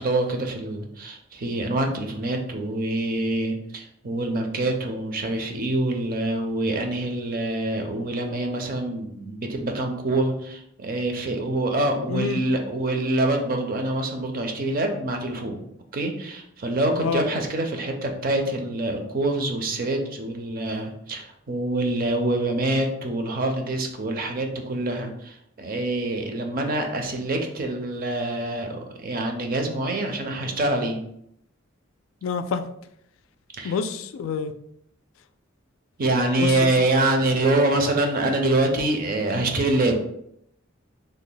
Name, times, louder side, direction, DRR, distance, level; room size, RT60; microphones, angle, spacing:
voice 1, 0.0-15.6 15.9-25.3 25.6-31.0 33.6-33.7 36.0-40.0, right 2 dB, 45° right, 4 dB, 0.5 m, -25 dB
voice 2, 12.1-12.4 17.0-17.2 32.2-32.6 33.6-34.5 36.4-36.7, left 6 dB, 80° left, 9 dB, 0.3 m, -27 dB
3.2 x 2.1 x 3.8 m, 0.73 s
head